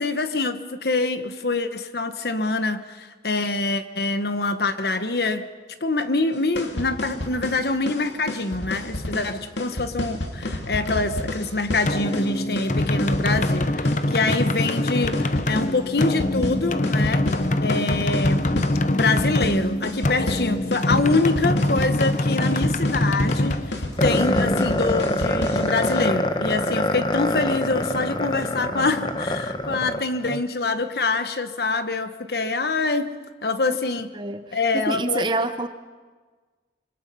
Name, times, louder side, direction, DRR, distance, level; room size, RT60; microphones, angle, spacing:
voice 1, 0.0-5.5 5.8-17.2 17.6-18.5 18.9-33.1 33.4-34.1 34.5-35.3, left 3 dB, 65° left, 1.3 m, -25 dB
sound 1, 6.3-26.1, left 1 dB, 85° left, 2.5 m, -31 dB
sound 2, 11.9-25.4, left 1 dB, 45° left, 0.8 m, -24 dB
sound 3, 24.0-30.4, left 1 dB, 25° left, 1.0 m, -25 dB
voice 2, 33.7-35.7, right 2 dB, 25° right, 1.0 m, -28 dB
26.0 x 25.0 x 5.5 m
head